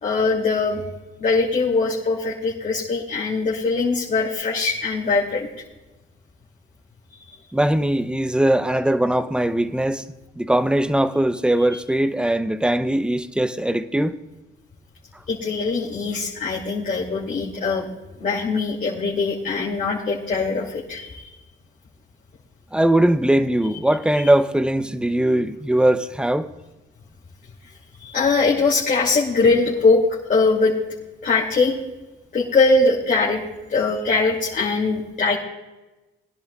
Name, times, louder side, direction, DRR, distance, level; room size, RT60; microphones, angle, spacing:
voice 1, 0.0-0.8 1.2-5.5 15.3-17.9 18.2-21.2 28.0-30.0 30.3-30.7 31.2-31.8 32.3-33.4 33.7-35.4, left 3 dB, 45° left, 2.8 m, -21 dB
voice 2, 7.5-10.0 10.4-14.2 22.7-26.5, right 1 dB, 5° right, 0.7 m, -20 dB
22.0 x 10.5 x 2.4 m
cardioid pair, 90°, 20 cm